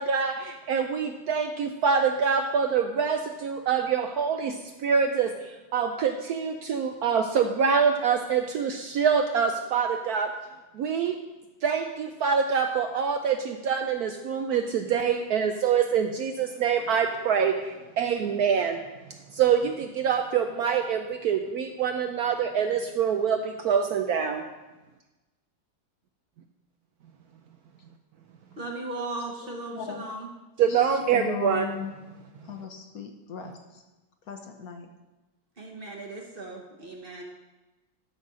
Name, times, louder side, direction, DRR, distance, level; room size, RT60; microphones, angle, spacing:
voice 1, 0.0-10.3 10.7-11.1 11.6-18.8 19.3-24.4 30.6-31.7, right 6 dB, 70° right, 5 dB, 0.9 m, -25 dB
voice 2, 28.6-30.3 35.6-37.2, right 2 dB, 40° right, 0 dB, 1.0 m, -37 dB
voice 3, 29.4-30.0 30.7-32.0 32.4-33.8 34.3-34.9, left 7 dB, 60° left, 5 dB, 1.1 m, -38 dB
12.0 x 4.1 x 6.1 m, 1.1 s
omnidirectional pair, 2.0 m